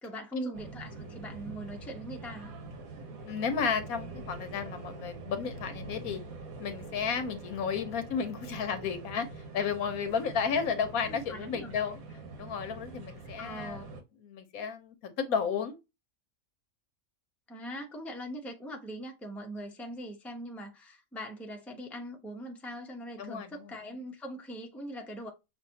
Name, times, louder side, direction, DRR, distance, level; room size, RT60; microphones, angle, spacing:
voice 1, 0.0-2.5 11.1-11.7 13.4-13.9 17.5-25.3, equal, ahead, 0.6 m, -42 dB
sound 1, 0.5-14.0, right 3 dB, 80° right, 1.4 m, -44 dB
voice 2, 3.3-6.2 6.6-9.3 9.5-12.0 12.4-13.8 14.2-15.8 23.2-23.7, left 6 dB, 90° left, 1.3 m, -33 dB
6.2 x 2.6 x 2.7 m
omnidirectional pair, 1.5 m